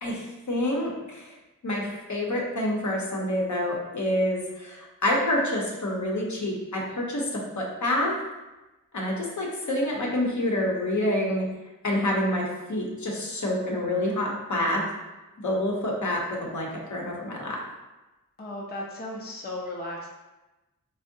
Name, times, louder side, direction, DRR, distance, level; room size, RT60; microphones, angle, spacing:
voice 1, 0.0-1.3 1.6-8.2 8.9-11.5 11.8-14.8 15.4-17.6, left 1 dB, 60° left, -2 dB, 0.8 m, -27 dB
voice 2, 18.4-20.1, left 1 dB, 30° left, -2 dB, 0.5 m, -35 dB
3.4 x 2.1 x 2.6 m, 1.1 s
cardioid pair, 40°, 34 cm